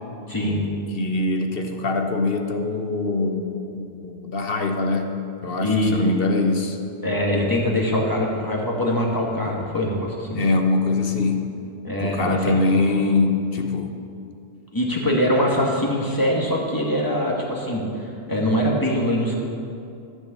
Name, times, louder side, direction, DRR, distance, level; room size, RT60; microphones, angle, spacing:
voice 1, 0.3-0.6 5.6-6.1 7.0-10.4 11.8-12.8 14.7-19.3, left 1 dB, 15° left, -2 dB, 2.0 m, -23 dB
voice 2, 0.9-6.8 10.3-11.5 12.0-13.9, left 3 dB, 55° left, 5 dB, 1.3 m, -23 dB
14.5 x 6.5 x 8.2 m, 2.5 s
omnidirectional pair, 1.2 m